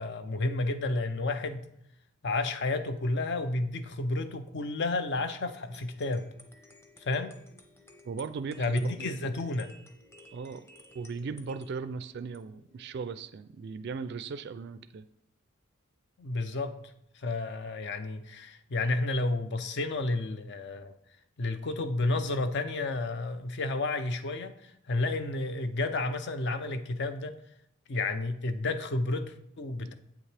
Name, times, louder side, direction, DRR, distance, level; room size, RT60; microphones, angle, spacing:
voice 1, 0.0-1.6 2.2-6.3 7.0-7.4 8.6-9.7 16.2-16.8 17.1-20.9 21.4-27.4 27.9-29.9, left 2 dB, 55° left, 10 dB, 0.6 m, -31 dB
sound 1, 5.4-13.7, left 1 dB, 15° left, 0.8 m, -56 dB
voice 2, 8.0-9.1 10.3-10.6 10.9-15.0 29.8-29.9, right 5 dB, 55° right, 12 dB, 0.3 m, -38 dB
7.9 x 7.2 x 3.4 m, 0.77 s
head